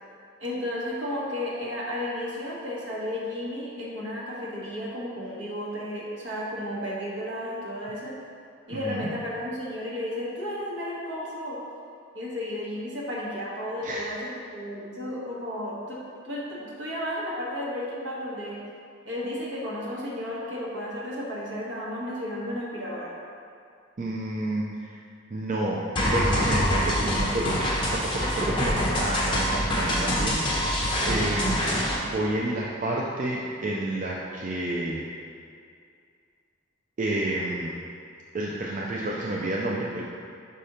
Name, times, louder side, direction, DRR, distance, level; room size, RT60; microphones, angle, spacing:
voice 1, 0.4-8.2 8.7-11.6 12.1-18.6 19.0-23.1, left 1 dB, 70° right, -5 dB, 1.3 m, -33 dB
voice 2, 8.7-9.1 13.8-14.1 24.0-25.0 25.3-30.7 31.0-31.6 32.0-35.0 37.0-37.7 38.3-40.1, right 1 dB, 40° right, -4 dB, 0.5 m, -30 dB
sound 1, 26.0-32.0, equal, 25° left, 1.0 m, -25 dB
5.3 x 5.0 x 4.2 m, 2.4 s
head